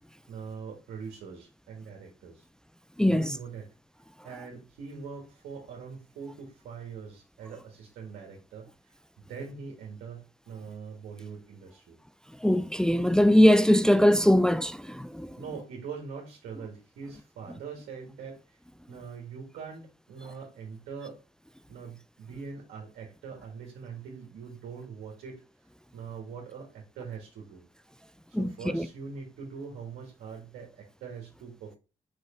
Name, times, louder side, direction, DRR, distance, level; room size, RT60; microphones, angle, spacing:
voice 1, 0.3-2.5 3.0-3.7 4.2-12.0 15.4-18.6 18.9-21.2 21.7-25.4 25.9-27.7 28.3-31.8, right 5 dB, 85° right, 1.9 m, -42 dB
voice 2, 3.0-3.3 12.4-15.4 28.3-28.9, equal, 5° left, 0.5 m, -21 dB
5.8 x 5.2 x 4.3 m
supercardioid pair, 55°, 16 cm